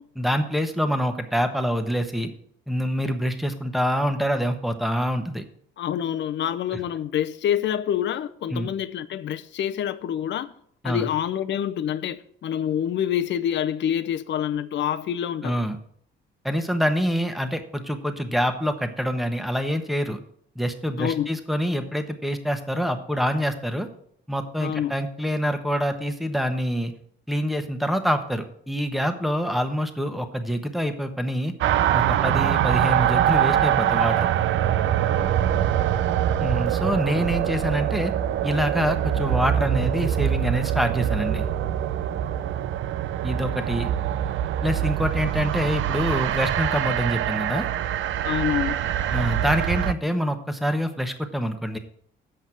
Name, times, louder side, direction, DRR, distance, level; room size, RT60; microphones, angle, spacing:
voice 1, 0.2-2.3 2.7-5.4 8.5-8.7 10.8-11.0 15.4-15.8 16.4-20.2 20.5-23.9 24.3-26.9 27.3-31.5 31.9-34.3 36.4-38.1 38.4-41.5 43.2-43.9 44.6-47.7 49.1-51.8, equal, ahead, 1.2 m, -26 dB
voice 2, 5.8-10.5 10.8-15.6 21.0-21.3 24.6-24.9 48.2-48.8, left 10 dB, 65° left, 0.7 m, -27 dB
sound 1, 31.6-49.9, right 10 dB, 75° right, 0.6 m, -24 dB
8.0 x 5.3 x 7.5 m
cardioid pair, 90°, 20 cm